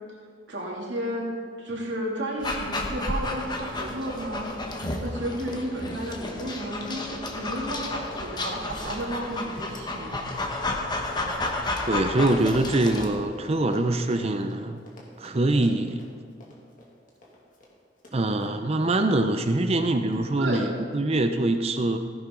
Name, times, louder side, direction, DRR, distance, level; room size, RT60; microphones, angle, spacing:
voice 1, 0.5-1.3 1.6-4.5 5.0-10.2 20.4-20.7, right 1 dB, 70° right, -3 dB, 2.9 m, -32 dB
Dog, 2.4-13.1, left 2 dB, 25° left, 1.2 m, -32 dB
sound 1, 2.7-11.5, equal, 50° right, 2.2 m, -48 dB
Run, 3.7-3.8 4.0-19.0 19.5-19.8 20.1-20.2, left 1 dB, 45° left, 2.3 m, -50 dB
voice 2, 11.9-14.8 15.2-16.0 18.1-22.0, right 2 dB, 35° right, 8 dB, 0.6 m, -24 dB
15.5 x 10.5 x 3.9 m, 2.1 s
head